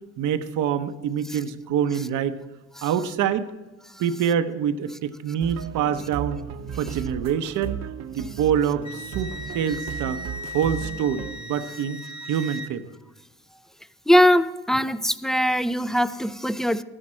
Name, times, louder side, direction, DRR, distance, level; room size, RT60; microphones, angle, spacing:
voice 1, 0.2-2.4 2.8-3.5 4.0-6.4 6.7-7.8 8.1-10.2 10.5-12.0 12.3-12.9, right 8 dB, 85° right, 0.8 m, -25 dB
sound 1, 5.4-11.3, right 9 dB, 60° right, 0.8 m, -35 dB
Wind instrument woodwind instrument, 8.8-12.7, left 1 dB, 15° right, 1.0 m, -37 dB
voice 2, 14.1-16.8, equal, ahead, 0.4 m, -21 dB
12.5 x 10.0 x 4.4 m
cardioid pair, 90°, 30 cm